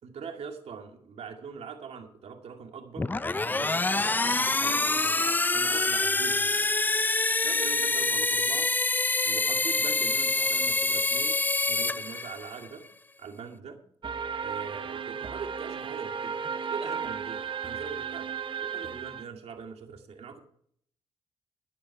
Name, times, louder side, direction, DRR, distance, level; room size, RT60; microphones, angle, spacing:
voice 1, 0.0-3.1 3.4-6.7 7.4-8.7 9.2-11.4 11.7-12.8 13.2-13.8 14.4-18.3 18.6-20.4, right 6 dB, 65° right, 3 dB, 2.3 m, -42 dB
sound 1, 3.0-12.7, left 3 dB, 15° left, 0.4 m, -26 dB
sound 2, 14.0-19.2, right 6 dB, 45° right, 0.8 m, -34 dB
13.5 x 9.6 x 4.6 m, 0.63 s
supercardioid pair, 55°, 11 cm